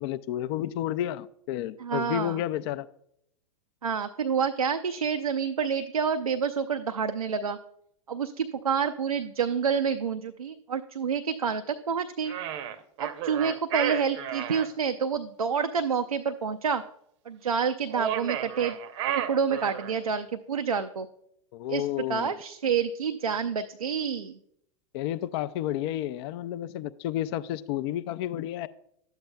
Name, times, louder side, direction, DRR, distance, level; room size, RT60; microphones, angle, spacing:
voice 1, 0.0-2.9 21.5-22.3 24.9-28.7, left 12 dB, 50° left, 14 dB, 0.4 m, -31 dB
voice 2, 1.8-2.4 3.8-7.6 8.1-12.3 13.0-16.8 17.3-18.8 19.1-21.1 21.7-21.8 22.1-24.4, right 6 dB, 90° right, 7 dB, 0.4 m, -28 dB
sound 1, 12.3-14.7 17.9-20.0, right 10 dB, 55° right, 0.7 m, -32 dB
12.0 x 8.0 x 2.2 m, 0.72 s
figure-of-eight pair, 95°, 18 cm